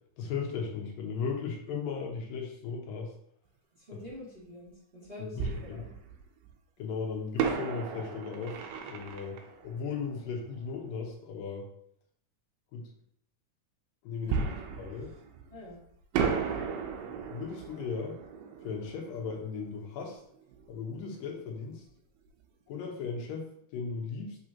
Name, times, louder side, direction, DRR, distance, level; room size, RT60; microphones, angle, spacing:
voice 1, 0.2-3.1 5.2-5.8 6.8-8.6 8.9-9.4 9.6-11.7 12.7-12.9 14.0-14.4 14.8-15.1 17.3-18.2 18.6-20.2 20.7-21.8 22.7-24.4, left 5 dB, 85° left, 1 dB, 2.8 m, -36 dB
voice 2, 3.8-5.9 14.2-14.7 15.5-15.8, left 1 dB, 20° right, -9 dB, 1.8 m, -46 dB
Fireworks, 4.1-4.2 5.4-6.5 7.4-10.8 14.3-15.7 16.1-20.7 20.9-21.0 21.6-21.8, right 6 dB, 85° right, 2.4 m, -35 dB
6.3 x 5.5 x 2.9 m, 0.67 s
omnidirectional pair, 3.8 m